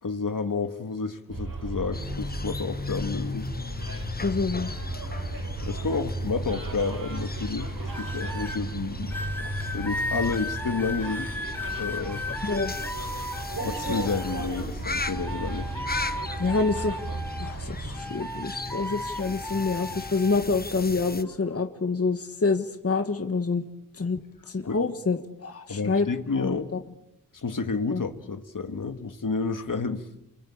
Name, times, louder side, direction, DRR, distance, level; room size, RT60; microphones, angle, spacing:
voice 1, 0.0-3.5 5.6-9.1 9.4-11.3 11.8-12.2 13.6-15.7 24.6-24.8 25.7-26.7 27.3-30.1, left 4 dB, 65° left, 7 dB, 2.0 m, -30 dB
Bus, 1.3-18.0, right 2 dB, 75° right, 6.9 m, -35 dB
sound 1, 1.9-21.2, left 3 dB, 25° left, 1.1 m, -38 dB
voice 2, 4.2-4.7 12.4-12.7 16.4-17.0 17.4-23.6 24.0-24.2 24.5-26.1 26.4-26.8 27.9-28.0, left 4 dB, 40° left, 7 dB, 1.6 m, -27 dB
sound 2, 7.9-8.6 9.1-14.6 15.0-17.6 17.9-20.5 21.2-21.5, left 1 dB, 5° left, 4.4 m, -35 dB
29.5 x 23.0 x 8.7 m, 0.86 s
wide cardioid pair, 85°, 35 cm